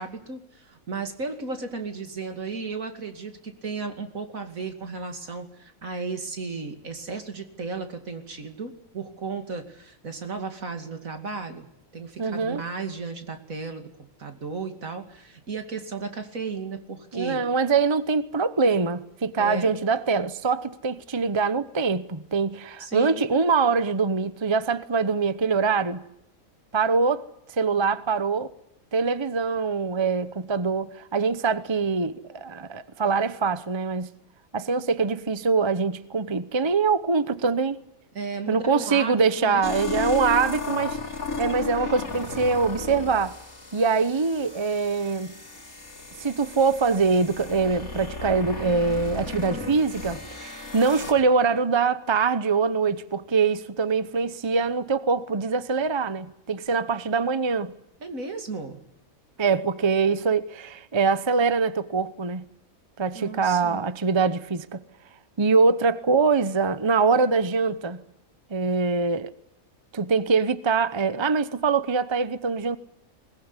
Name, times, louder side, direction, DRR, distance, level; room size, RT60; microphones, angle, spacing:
voice 1, 0.0-13.9 14.2-17.4 19.4-19.8 22.8-23.2 38.1-40.0 58.0-58.8 63.1-63.8, right 4 dB, 75° right, 2.9 m, -35 dB
voice 2, 12.2-12.6 17.1-26.0 26.7-27.3 27.5-28.5 28.9-34.1 34.5-37.8 38.5-41.0 41.4-43.4 43.7-45.3 46.2-57.7 59.4-62.5 63.0-64.8 65.4-68.0 68.5-69.3 69.9-72.8, right 4 dB, 25° right, 0.9 m, -23 dB
sound 1, 39.6-51.1, left 4 dB, 85° left, 5.0 m, -35 dB
21.5 x 20.5 x 9.8 m
omnidirectional pair, 1.5 m